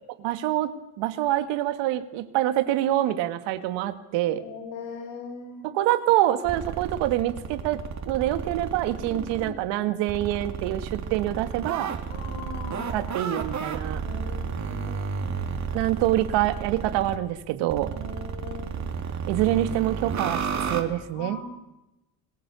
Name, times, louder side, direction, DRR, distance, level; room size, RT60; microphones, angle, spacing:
voice 1, 0.2-0.7 1.0-4.4 5.7-11.9 12.9-14.0 15.7-17.9 19.3-21.4, right 14 dB, 75° right, 11 dB, 2.1 m, -26 dB
voice 2, 4.4-5.7 9.0-9.5 12.1-13.1 13.9-15.2 17.8-18.8 21.1-21.6, left 4 dB, 85° left, 1 dB, 6.5 m, -40 dB
sound 1, 6.4-9.5 10.1-17.2 17.7-20.8, right 6 dB, 40° right, 3.7 m, -32 dB
27.0 x 19.5 x 7.1 m, 0.95 s
supercardioid pair, 100°, 43 cm